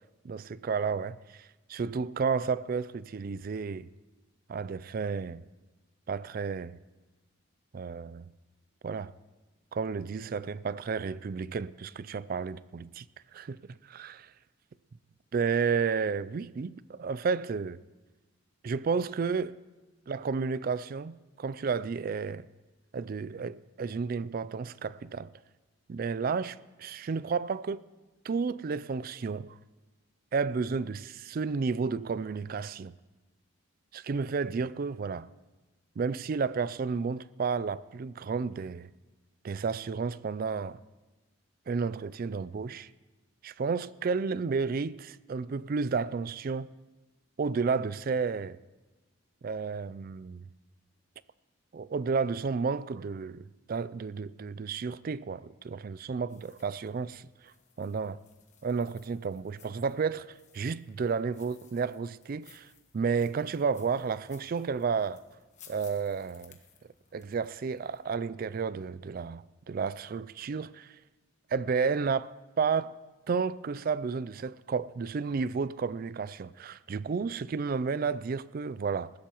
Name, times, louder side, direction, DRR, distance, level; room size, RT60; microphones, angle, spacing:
voice 1, 0.2-3.9 4.5-5.4 6.1-6.7 7.7-8.3 8.8-9.1 9.7-13.1 13.3-14.3 15.3-17.8 18.6-19.6 20.1-22.5 22.9-25.3 25.9-27.8 28.2-29.6 30.3-32.9 33.9-35.3 36.0-38.9 39.4-40.8 41.7-42.9 43.4-46.7 47.4-48.6 49.4-50.4 51.7-58.2 58.6-60.3 60.5-62.7 62.9-65.2 65.7-66.6 67.1-70.9 71.5-72.9 73.3-79.1, right 5 dB, 45° right, 0.3 m, -32 dB
sound 1, 56.3-68.2, left 7 dB, 35° left, 1.3 m, -61 dB
20.0 x 15.5 x 3.0 m
head